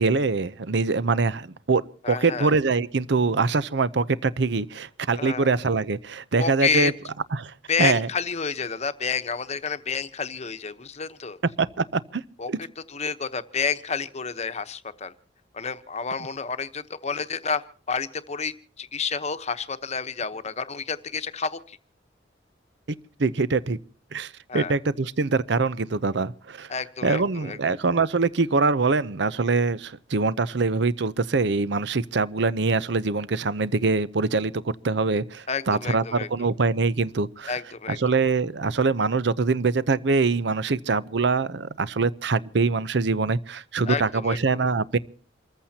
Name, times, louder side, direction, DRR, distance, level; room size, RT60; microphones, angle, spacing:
voice 1, 0.0-6.9 7.3-7.5 7.8-8.1 11.6-12.2 12.5-12.6 23.2-23.8 24.1-26.7 27.0-37.5 37.9-45.0, right 4 dB, 65° right, 0.7 m, -24 dB
voice 2, 2.0-2.5 5.2-5.5 6.4-6.9 7.7-11.4 12.4-12.5 12.9-15.1 15.5-21.8 24.5-24.7 26.7-27.7 35.5-36.3 37.5-38.2 43.8-44.4, left 5 dB, 35° left, 1.0 m, -29 dB
28.0 x 14.5 x 2.8 m
head